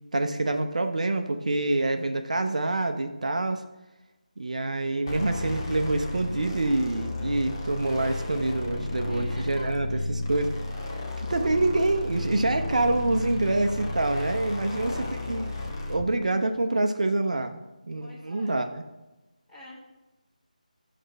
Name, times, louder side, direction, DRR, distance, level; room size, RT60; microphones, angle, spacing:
voice 1, 0.1-3.6 4.4-9.9 10.3-10.5 11.2-14.9 15.3-15.5 15.9-18.7, right 2 dB, 55° right, 7 dB, 0.5 m, -26 dB
sound 1, 5.1-16.1, left 2 dB, 30° left, 0.8 m, -33 dB
voice 2, 9.0-10.1 14.6-15.2 18.0-18.7 19.5-19.8, left 1 dB, 5° left, -9 dB, 1.4 m, -46 dB
sound 2, 10.9-16.0, left 1 dB, 10° right, 0.8 m, -53 dB
6.2 x 3.3 x 5.3 m, 1.0 s
figure-of-eight pair, 160°, 4 cm